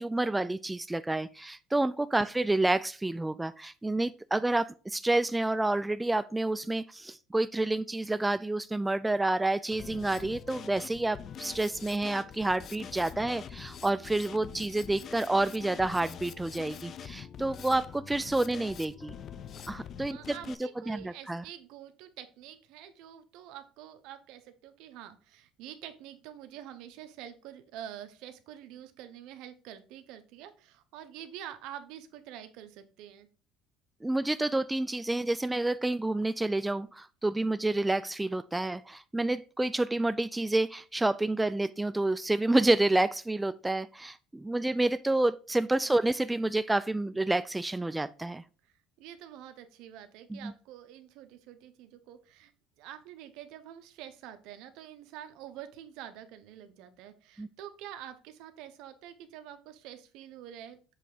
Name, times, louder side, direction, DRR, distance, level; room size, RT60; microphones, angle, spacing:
voice 1, 0.0-19.1 19.7-20.2 20.9-21.4 34.0-48.4 50.3-50.5 57.4-57.5, right 2 dB, 10° right, 13 dB, 0.3 m, -29 dB
Drum kit, 9.7-20.5, left 8 dB, 45° left, 0.5 m, -45 dB
voice 2, 20.1-33.3 45.8-45.9 48.6-52.5 52.8-60.8, right 11 dB, 70° right, 9 dB, 1.0 m, -47 dB
7.6 x 3.4 x 4.9 m, 0.37 s
cardioid pair, 115°, 0 cm